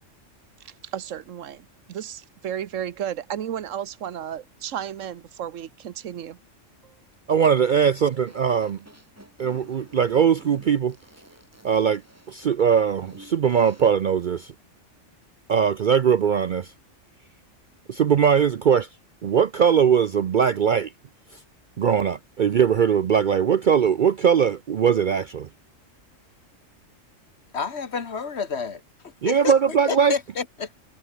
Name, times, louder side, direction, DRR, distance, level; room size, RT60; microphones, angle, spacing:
voice 1, 0.6-6.4 6.8-6.9, right 9 dB, 80° right, 1.2 m, -33 dB
voice 2, 7.3-8.8 9.4-11.0 11.6-12.0 12.3-14.5 15.5-16.7 17.9-18.9 19.2-20.9 21.8-25.5 29.2-30.1, right 7 dB, 55° right, 0.6 m, -20 dB
sound 1, 7.4-13.9, right 1 dB, 10° right, 2.6 m, -51 dB
voice 3, 27.5-28.8 29.3-30.7, left 5 dB, 60° left, 1.7 m, -29 dB
omnidirectional pair, 1.3 m